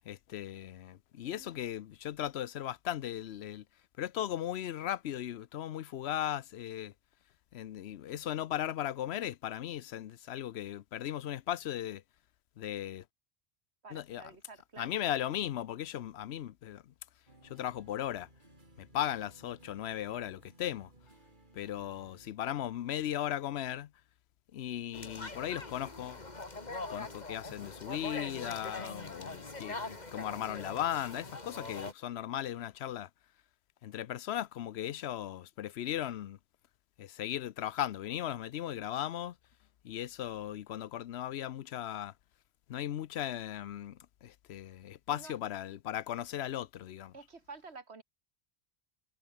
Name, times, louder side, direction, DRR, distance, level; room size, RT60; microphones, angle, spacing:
voice 1, 0.1-3.6 4.0-6.9 7.5-12.0 12.6-13.0 13.9-14.2 14.8-16.8 17.5-18.3 18.8-20.9 21.5-23.9 24.5-26.2 26.9-33.1 33.8-36.4 37.0-39.3 39.8-42.1 42.7-47.1, left 11 dB, 80° left, 0.9 m, -37 dB
voice 2, 13.8-15.0 45.1-45.3 47.1-48.0, right 4 dB, 85° right, 2.5 m, -50 dB
sound 1, 17.3-22.3, right 2 dB, 50° right, 4.1 m, -60 dB
sound 2, 24.9-31.9, left 2 dB, 40° left, 2.5 m, -43 dB
omnidirectional pair, 1.1 m